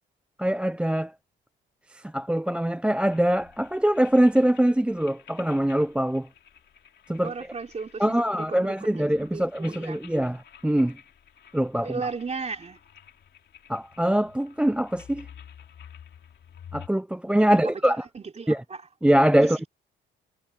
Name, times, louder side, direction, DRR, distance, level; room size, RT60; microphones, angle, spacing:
voice 1, 0.4-1.1 2.1-6.3 7.1-7.3 8.0-11.0 11.5-11.9 13.7-15.3 16.7-18.0 18.5-18.6 19.0-19.6, right 1 dB, 5° right, 0.5 m, -23 dB
sound 1, 3.1-16.9, left 9 dB, 60° left, 2.6 m, -51 dB
voice 2, 7.2-9.0 9.3-10.0 11.8-12.8 17.5-18.9 19.4-19.7, right 4 dB, 35° right, 3.8 m, -35 dB
cardioid pair, 90°, 20 cm